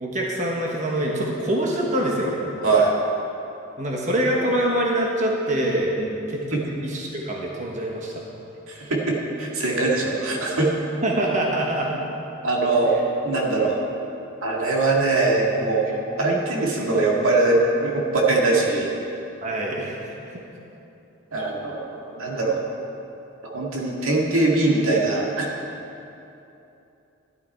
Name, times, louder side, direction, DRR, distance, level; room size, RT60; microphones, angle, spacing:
voice 1, 0.0-2.4 3.8-6.0 6.3-8.1 11.0-12.0 12.9-13.0 19.4-20.4, right 1 dB, 35° right, -2 dB, 1.2 m, -25 dB
voice 2, 2.6-2.9 6.0-6.1 6.5-6.6 8.7-10.7 12.4-13.0 13.2-13.8 14.4-18.9 21.3-22.6 23.4-25.5, right 2 dB, 85° right, -2 dB, 1.9 m, -22 dB
12.0 x 11.0 x 4.5 m, 2.9 s
head